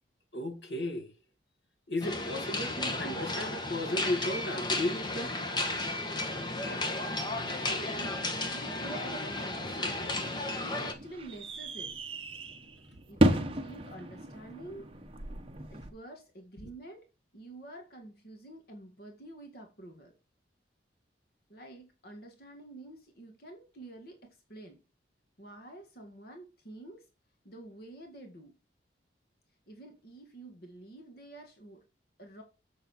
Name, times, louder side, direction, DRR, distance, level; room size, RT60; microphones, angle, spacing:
voice 1, 0.3-1.1 1.9-5.4, left 1 dB, 70° left, 2.2 m, -34 dB
sound 1, 2.0-10.9, left 2 dB, 25° left, 1.3 m, -34 dB
voice 2, 6.5-7.0 7.4-12.0 13.1-15.0 15.7-20.2 21.5-24.8 25.4-27.1 27.4-28.6 29.7-31.8 32.2-32.4, right 1 dB, 50° left, 1.8 m, -48 dB
sound 2, 9.9-15.9, right 1 dB, 30° right, 1.1 m, -33 dB
7.5 x 6.8 x 4.3 m
head